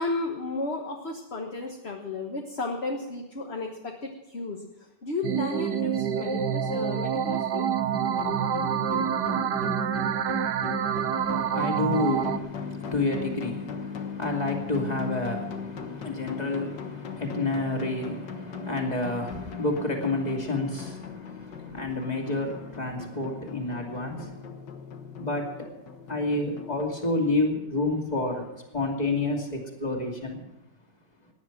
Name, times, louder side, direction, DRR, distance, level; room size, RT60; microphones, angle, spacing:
voice 1, 0.0-7.6, left 3 dB, 35° left, 1 dB, 1.5 m, -33 dB
sound 1, 5.2-12.4, right 8 dB, 65° right, 1.4 m, -27 dB
sound 2, 7.9-27.2, left 6 dB, 65° left, 1.9 m, -39 dB
voice 2, 10.8-24.5 25.2-25.7 26.1-30.4, left 2 dB, 20° left, 1 dB, 2.7 m, -30 dB
18.0 x 10.5 x 6.0 m, 0.97 s
omnidirectional pair, 2.1 m